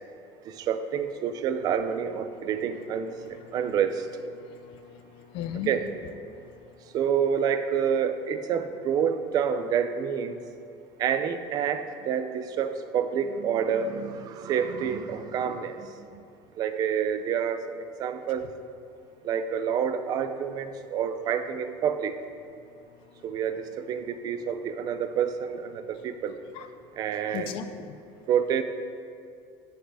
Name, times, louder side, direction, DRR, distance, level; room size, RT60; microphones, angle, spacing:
voice 1, 0.4-3.1 3.5-4.1 5.7-5.8 6.9-10.4 11.0-16.2 16.6-18.5 19.2-22.1 23.2-26.4 27.0-27.5 28.3-28.6, right 8 dB, 40° right, 10 dB, 0.5 m, -28 dB
voice 2, 2.3-5.8 6.3-6.4 18.4-18.5 26.5-26.7 27.1-28.0, left 9 dB, 60° left, 9 dB, 0.6 m, -40 dB
9.7 x 6.5 x 4.9 m, 2.4 s
cardioid pair, 165°, 10 cm